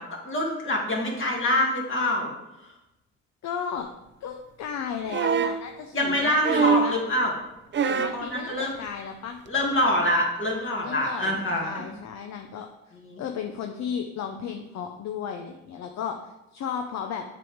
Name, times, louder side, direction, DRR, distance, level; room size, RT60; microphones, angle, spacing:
voice 1, 0.0-2.3 2.6-2.7 5.9-7.3 8.1-8.7 9.5-11.9 13.0-13.2, left 1 dB, 40° left, -1 dB, 2.2 m, -25 dB
voice 2, 3.4-3.9 4.2-7.0 7.8-9.4 10.8-12.7 13.2-17.2, left 7 dB, 60° left, 4 dB, 0.7 m, -34 dB
sound 1, 5.1-5.6 6.4-7.0 7.7-8.2 9.5-9.6, right 6 dB, 40° right, 0.5 m, -23 dB
7.5 x 3.5 x 6.3 m, 0.94 s
cardioid pair, 90°, 30 cm